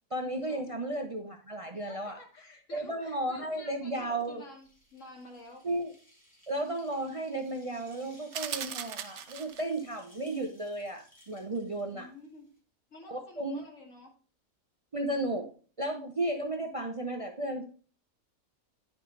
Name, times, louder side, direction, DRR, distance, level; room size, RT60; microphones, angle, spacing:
voice 1, 0.1-2.2 2.7-4.4 5.6-5.9 6.5-12.1 13.1-13.6 14.9-15.5 15.8-17.6, right 1 dB, 40° right, 4 dB, 0.5 m, -34 dB
voice 2, 1.7-5.7 11.8-12.5 12.9-14.1, left 2 dB, 60° left, 0 dB, 2.3 m, -51 dB
sound 1, 4.2-12.6, equal, 5° left, 2.9 m, -60 dB
sound 2, 8.3-9.8, right 9 dB, 65° right, 0.9 m, -38 dB
10.0 x 5.2 x 3.2 m, 0.40 s
omnidirectional pair, 1.5 m